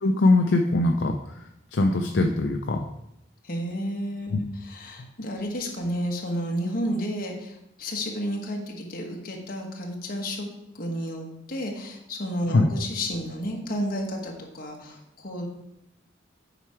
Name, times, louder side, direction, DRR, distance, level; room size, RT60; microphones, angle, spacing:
voice 1, 0.0-1.4 1.7-2.9 4.3-4.4 5.0-5.1 12.5-12.7, left 2 dB, 65° left, 4 dB, 0.5 m, -22 dB
voice 2, 3.4-10.5 10.8-15.5, equal, 50° left, 1 dB, 1.3 m, -31 dB
7.9 x 4.8 x 4.4 m, 0.84 s
head